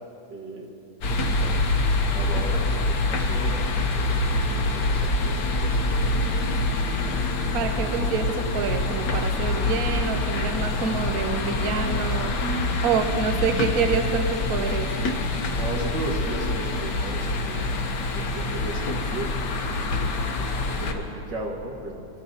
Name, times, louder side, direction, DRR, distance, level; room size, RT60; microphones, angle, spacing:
voice 1, 0.3-0.7 1.0-5.9 11.9-12.2 15.5-17.7 18.1-22.1, right 2 dB, 85° right, -1 dB, 2.4 m, -37 dB
sound 1, 1.0-20.9, left 2 dB, 75° left, 1.7 m, -25 dB
voice 2, 7.5-12.3 12.8-14.9, right 6 dB, 65° right, 6 dB, 1.1 m, -27 dB
24.0 x 13.5 x 2.8 m, 2.8 s
omnidirectional pair, 1.8 m